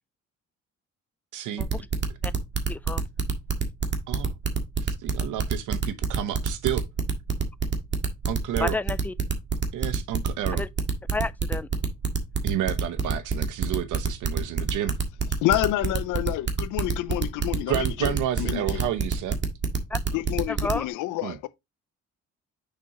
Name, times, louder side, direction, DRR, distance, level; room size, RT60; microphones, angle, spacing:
voice 1, 1.3-1.6 4.1-4.3 5.0-6.9 8.3-8.8 9.7-10.7 12.4-15.0 17.7-19.4 21.2-21.4, right 11 dB, 80° right, 0.9 m, -30 dB
sound 1, 1.6-20.8, right 5 dB, 35° right, 1.7 m, -26 dB
voice 2, 2.7-3.0 8.6-9.1 10.5-10.7 11.1-11.7 19.9-20.0 20.5-20.8, left 3 dB, 5° left, 0.4 m, -30 dB
voice 3, 15.4-18.9 20.1-21.5, left 15 dB, 90° left, 0.6 m, -28 dB
6.8 x 5.6 x 2.9 m
cardioid pair, 90°, 30 cm